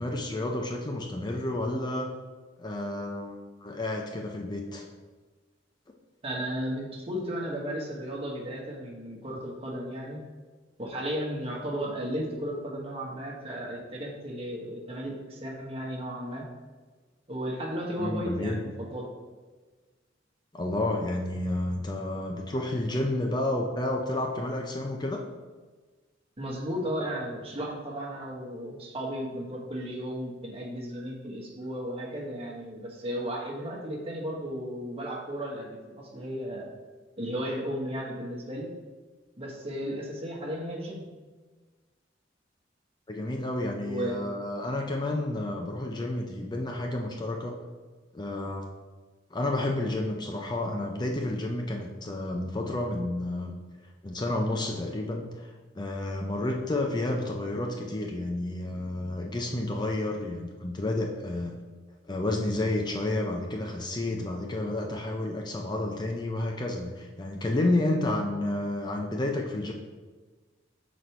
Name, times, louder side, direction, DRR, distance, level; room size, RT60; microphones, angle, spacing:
voice 1, 0.0-2.1 2.6-4.9 18.0-18.6 20.5-25.2 43.1-47.6 48.1-48.7 49.3-53.5 54.0-55.5 55.8-61.5 62.1-69.7, left 1 dB, 25° left, 1 dB, 0.5 m, -30 dB
voice 2, 6.2-10.2 10.8-16.5 17.3-19.1 26.4-36.7 37.2-38.7 39.4-41.0 43.9-44.3, equal, 30° right, -2 dB, 1.3 m, -34 dB
6.4 x 4.1 x 4.5 m, 1.3 s
head